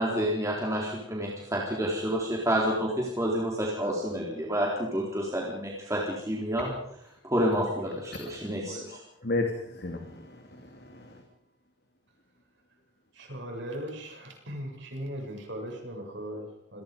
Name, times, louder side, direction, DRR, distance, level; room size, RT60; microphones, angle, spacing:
voice 1, 0.0-6.7 7.2-9.0, equal, 15° right, -3 dB, 4.0 m, -29 dB
voice 2, 8.7-11.2, left 2 dB, 50° left, 3 dB, 3.0 m, -35 dB
voice 3, 13.1-16.8, equal, 65° right, 2 dB, 7.7 m, -38 dB
27.5 x 20.5 x 5.3 m, 0.74 s
head